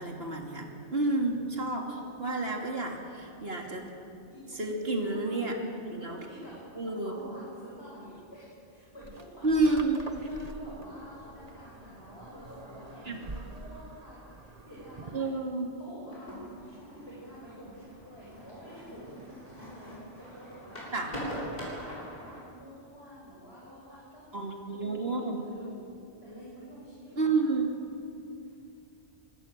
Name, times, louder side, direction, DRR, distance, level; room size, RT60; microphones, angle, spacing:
voice 1, 0.0-3.9 4.5-5.6 5.9-6.2 6.7-7.1 9.4-10.0 13.0-13.2 15.1-15.7 20.9-21.1 24.3-25.4 27.2-27.7, right 3 dB, 55° right, 1 dB, 3.2 m, -30 dB
voice 2, 4.3-5.5 6.0-6.5 6.8-15.3 15.7-21.3 21.6-24.5 24.8-26.0 26.2-27.5 28.4-28.5, equal, 60° left, -7 dB, 7.2 m, -49 dB
sound 1, 9.0-15.4, right 2 dB, 35° right, 1.4 m, -46 dB
sound 2, 16.1-22.4, equal, 35° left, 8.3 m, -42 dB
25.0 x 25.0 x 7.7 m, 2.5 s
omnidirectional pair, 1.2 m